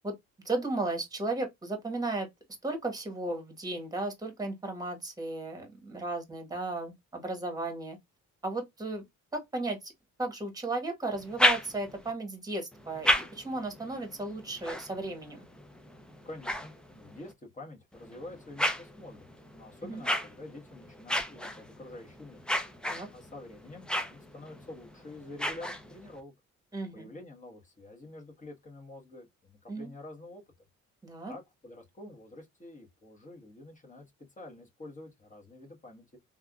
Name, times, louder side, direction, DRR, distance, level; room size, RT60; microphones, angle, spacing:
voice 1, 0.4-2.3 2.6-8.0 8.4-9.0 9.3-9.9 10.2-15.4 19.8-20.0 22.9-23.1 26.7-27.1 29.7-29.9 31.0-31.3, right 2 dB, 10° right, 1.2 m, -35 dB
sound 1, 11.1-12.1 12.7-17.3 17.9-26.2, equal, 5° left, 0.6 m, -34 dB
voice 2, 16.2-22.4 23.1-26.3 26.9-30.4 31.3-34.1 34.4-36.2, left 2 dB, 25° left, 1.3 m, -47 dB
3.4 x 2.4 x 2.3 m
cardioid pair, 90°, 30 cm